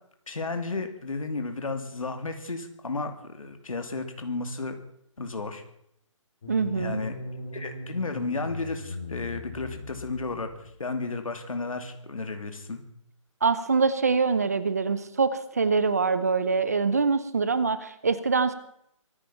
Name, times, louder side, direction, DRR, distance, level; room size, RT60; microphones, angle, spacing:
voice 1, 0.3-4.8 5.2-5.6 6.7-7.1 7.5-12.8, left 3 dB, 90° left, 6 dB, 2.8 m, -33 dB
sound 1, 6.4-10.7, left 2 dB, 30° left, 3.7 m, -39 dB
voice 2, 6.5-7.0 13.4-18.5, right 4 dB, 30° right, 14 dB, 0.9 m, -24 dB
24.0 x 10.0 x 5.8 m, 0.73 s
hypercardioid pair, 180°, 17 cm